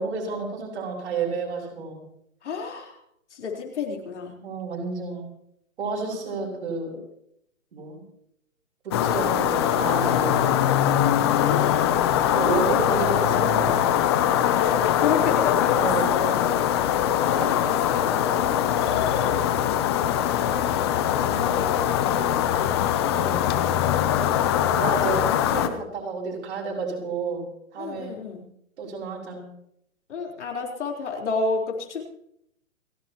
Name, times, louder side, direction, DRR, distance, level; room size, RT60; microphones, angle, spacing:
voice 1, 0.0-2.0 4.4-5.3 5.8-7.0 7.7-8.0 8.8-10.8 12.3-14.1 15.8-16.2 18.8-19.3 23.1-23.5 24.7-27.5 27.7-28.2 28.8-29.5, right 4 dB, 55° right, -2 dB, 6.3 m, -31 dB
voice 2, 2.4-3.0 3.3-4.4 6.0-6.5 11.3-12.6 12.9-13.7 14.4-15.8 16.1-16.5 17.2-18.5 21.3-22.7 25.3-25.5 27.8-28.4 30.1-32.0, left 5 dB, 60° left, 0 dB, 4.2 m, -31 dB
sound 1, 8.9-25.7, left 10 dB, 20° left, 0.7 m, -22 dB
29.0 x 11.5 x 3.0 m, 0.73 s
hypercardioid pair, 145°, 40 cm